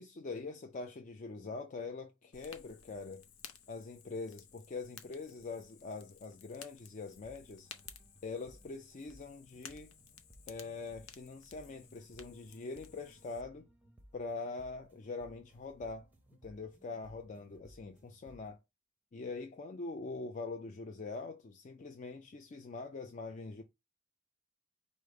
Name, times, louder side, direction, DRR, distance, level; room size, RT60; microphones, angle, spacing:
voice 1, 0.0-3.3 3.7-7.7 8.2-9.9 10.5-13.7 14.1-16.1 16.4-18.6 19.1-23.6, left 3 dB, 35° left, 0.4 m, -43 dB
Fire, 2.3-13.4, left 8 dB, 70° left, 0.6 m, -56 dB
sound 1, 7.1-18.6, equal, 5° right, 0.7 m, -62 dB
5.0 x 2.0 x 4.6 m
head